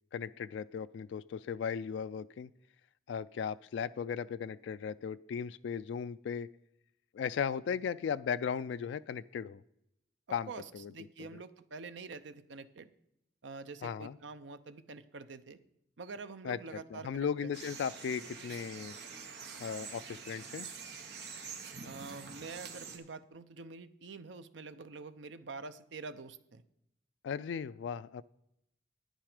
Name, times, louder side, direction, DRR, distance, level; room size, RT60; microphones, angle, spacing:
voice 1, 0.1-2.5 3.1-6.5 7.1-9.6 10.3-10.9 13.8-14.2 16.4-16.6 16.9-19.0 19.6-20.7 27.2-28.2, left 7 dB, 80° left, 13 dB, 0.3 m, -36 dB
voice 2, 10.5-12.9 13.4-15.6 16.0-17.5 21.8-26.6, right 4 dB, 85° right, 11 dB, 0.6 m, -46 dB
sound 1, 17.5-23.0, right 5 dB, 65° right, 1.2 m, -46 dB
9.9 x 9.0 x 5.0 m, 0.80 s
head